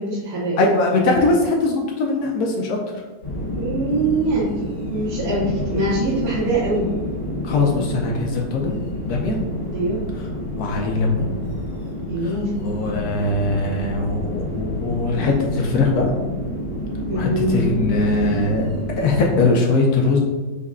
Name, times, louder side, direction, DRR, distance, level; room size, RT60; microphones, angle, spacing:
voice 1, 0.0-0.6 3.5-4.6 4.9-6.9 9.7-10.0 12.1-12.5 17.1-17.8, right 2 dB, 60° right, -7 dB, 1.2 m, -23 dB
voice 2, 0.6-2.8 7.4-8.8 9.1-9.4 10.6-11.3 12.2-16.1 17.2-18.7 19.0-20.2, left 3 dB, 70° left, 0 dB, 1.0 m, -21 dB
sound 1, 3.2-19.4, left 1 dB, 50° left, 2.1 m, -29 dB
5.2 x 2.2 x 3.6 m, 1.3 s
omnidirectional pair, 2.0 m